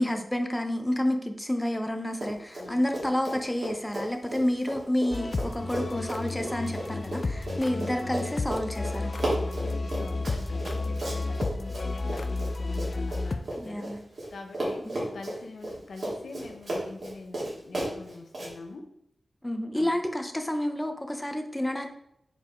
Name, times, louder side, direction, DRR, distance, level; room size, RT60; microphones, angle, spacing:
voice 1, 0.0-9.1 13.6-14.0 14.9-15.0 19.4-21.9, left 1 dB, 10° left, 5 dB, 0.8 m, -29 dB
Run, 2.1-2.7 2.9-14.3 14.5-18.5, right 1 dB, 70° right, 2.8 m, -34 dB
sound 1, 5.1-13.4, left 3 dB, 55° left, 0.5 m, -32 dB
voice 2, 9.3-14.0 14.3-18.8 19.7-20.0, left 3 dB, 90° left, 4 dB, 0.9 m, -44 dB
5.6 x 4.8 x 4.4 m, 0.74 s
wide cardioid pair, 70°, 0 cm